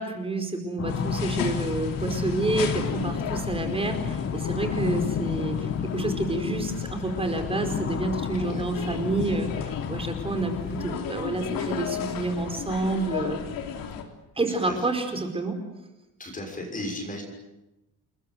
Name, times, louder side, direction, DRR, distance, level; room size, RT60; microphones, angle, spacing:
voice 1, 0.0-13.4 14.4-15.6, right 2 dB, 15° right, 5 dB, 4.8 m, -29 dB
sound 1, 0.8-11.0, left 7 dB, 40° left, 1.5 m, -32 dB
sound 2, 0.9-14.0, left 7 dB, 80° left, 3.6 m, -35 dB
voice 2, 8.4-8.7 14.5-14.8 16.2-17.2, left 1 dB, 25° left, 2 dB, 6.6 m, -35 dB
29.0 x 21.5 x 7.9 m, 0.94 s
cardioid pair, 150°, 34 cm